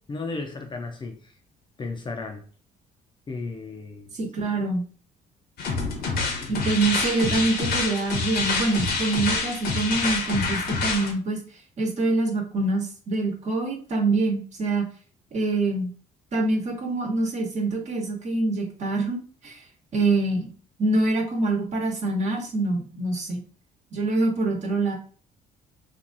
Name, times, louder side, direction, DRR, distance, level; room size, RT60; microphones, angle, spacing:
voice 1, 0.1-1.4 1.8-2.4 3.3-4.1 6.2-6.7, left 3 dB, 30° left, 4 dB, 0.6 m, -35 dB
voice 2, 4.1-4.8 6.5-11.4 11.8-14.9 15.3-15.9 16.3-19.5 19.9-20.5 20.8-23.4 23.9-24.9, right 2 dB, 45° right, 0 dB, 1.2 m, -25 dB
sound 1, 5.6-11.1, left 4 dB, 65° left, 1.1 m, -27 dB
3.0 x 2.5 x 3.9 m, 0.41 s
cardioid pair, 110°, 17 cm